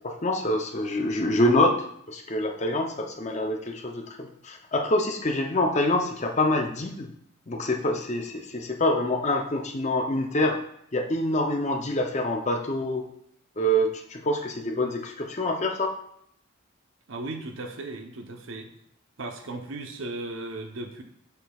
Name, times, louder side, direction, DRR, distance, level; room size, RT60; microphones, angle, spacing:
voice 1, 0.0-1.7 2.1-7.1 7.5-10.6 10.9-13.0 13.6-15.9, left 1 dB, 35° left, 3 dB, 0.6 m, -26 dB
voice 2, 17.1-18.7 19.2-21.0, right 2 dB, 70° right, 5 dB, 0.7 m, -36 dB
6.7 x 6.0 x 2.3 m, 0.69 s
head